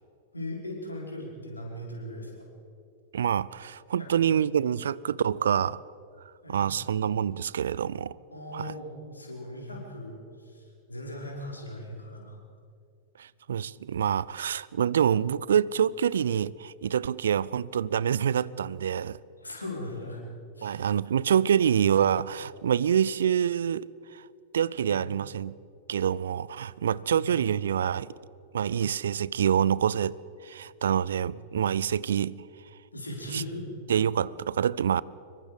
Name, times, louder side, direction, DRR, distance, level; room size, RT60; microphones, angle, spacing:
voice 1, 0.3-2.5 4.0-4.1 6.4-6.9 8.3-12.4 19.4-20.2 20.6-20.8 24.9-25.1 27.0-27.4 31.2-31.8 32.9-33.7, left 1 dB, 85° left, 4.8 m, -39 dB
voice 2, 3.1-5.8 6.5-8.1 8.5-8.7 13.2-19.2 20.6-23.9 24.1-24.2 24.5-25.6 25.9-28.1 28.5-30.2 30.4-32.4 33.3-33.4 33.9-35.0, right 8 dB, 65° right, 0.5 m, -26 dB
26.0 x 23.0 x 5.1 m
figure-of-eight pair, 95°, 0 cm